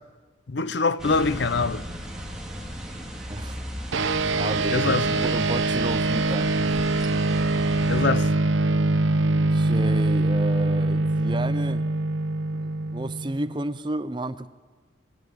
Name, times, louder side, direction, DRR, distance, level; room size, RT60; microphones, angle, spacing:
voice 1, 0.5-1.8 4.7-5.3 7.9-8.3, left 4 dB, 65° left, 0.7 m, -24 dB
sound 1, 1.0-8.1, equal, 5° right, 2.2 m, -37 dB
voice 2, 3.3-3.6 4.4-6.8 9.5-11.9 12.5-14.5, right 2 dB, 25° right, 0.6 m, -32 dB
sound 2, 3.9-13.7, right 2 dB, 80° right, 0.9 m, -23 dB
22.0 x 16.0 x 9.2 m
head